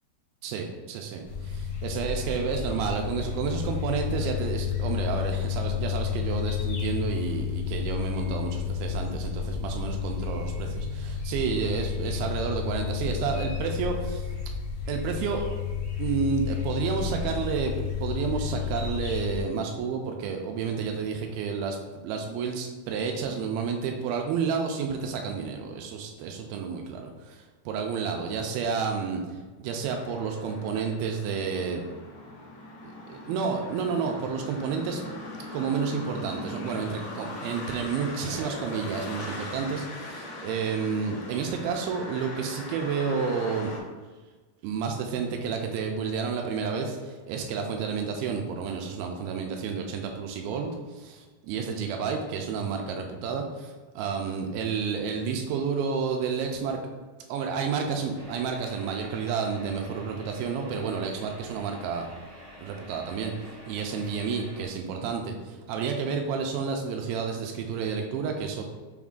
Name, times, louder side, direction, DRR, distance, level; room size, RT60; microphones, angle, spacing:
voice 1, 0.4-14.3 14.9-15.5 16.0-21.8 22.0-31.8 32.8-35.0 35.5-43.7 44.6-56.8 57.3-62.1 62.6-68.6, right 5 dB, 80° right, 3 dB, 2.3 m, -30 dB
sound 1, 1.2-19.4, left 7 dB, 50° left, 1.3 m, -31 dB
sound 2, 29.8-43.8, left 1 dB, 80° left, 2.8 m, -40 dB
sound 3, 58.1-64.7, equal, 65° right, 1.0 m, -48 dB
6.1 x 3.6 x 2.4 m, 1.3 s
omnidirectional pair, 4.5 m